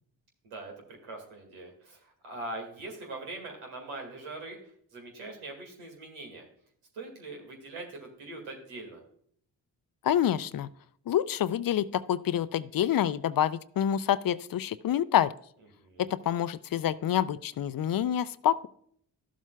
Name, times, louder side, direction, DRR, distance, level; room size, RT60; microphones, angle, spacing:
voice 1, 0.4-4.6 4.9-6.5 6.9-9.0 15.8-16.2, right 2 dB, 85° right, 2 dB, 2.0 m, -42 dB
voice 2, 10.0-10.7 11.1-15.3 16.0-18.7, left 10 dB, 45° left, 17 dB, 0.5 m, -27 dB
12.5 x 7.4 x 2.2 m, 0.65 s
hypercardioid pair, 40°, 48 cm